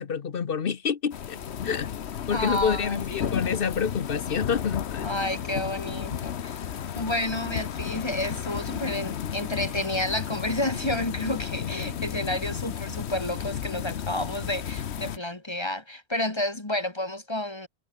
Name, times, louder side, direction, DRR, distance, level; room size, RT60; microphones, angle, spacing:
voice 1, 0.0-1.9 2.3-5.1, left 6 dB, 60° left, 1.2 m, -28 dB
sound 1, 1.1-15.2, left 9 dB, 80° left, 1.2 m, -33 dB
voice 2, 2.3-3.4 5.0-6.6 6.9-17.7, left 1 dB, 25° left, 1.8 m, -30 dB
omnidirectional pair, 1.1 m